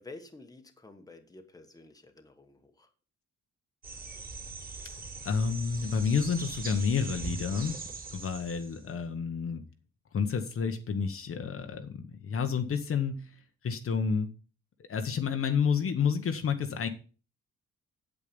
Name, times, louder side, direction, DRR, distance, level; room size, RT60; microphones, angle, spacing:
voice 1, 0.0-2.9, left 2 dB, 10° left, 6 dB, 1.2 m, -50 dB
sound 1, 3.8-8.9, right 3 dB, 30° right, 3.0 m, -41 dB
voice 2, 5.2-7.8 8.1-9.6 10.1-13.4 13.6-14.3 14.9-16.9, left 6 dB, 50° left, 7 dB, 1.0 m, -30 dB
8.6 x 8.5 x 5.2 m, 0.36 s
wide cardioid pair, 160°, 30 cm